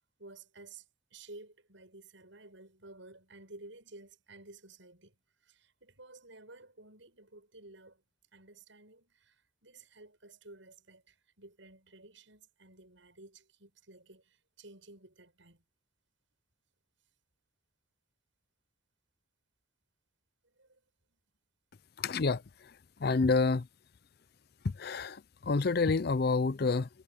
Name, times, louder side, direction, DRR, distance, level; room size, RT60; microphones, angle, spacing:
voice 1, 0.2-0.9 1.1-5.2 5.4-8.0 8.3-15.6 20.4-21.2, right 2 dB, 70° right, 7.9 m, -54 dB
voice 2, 22.0-22.7 23.0-23.7 24.6-26.9, left 4 dB, 50° left, 0.5 m, -29 dB
head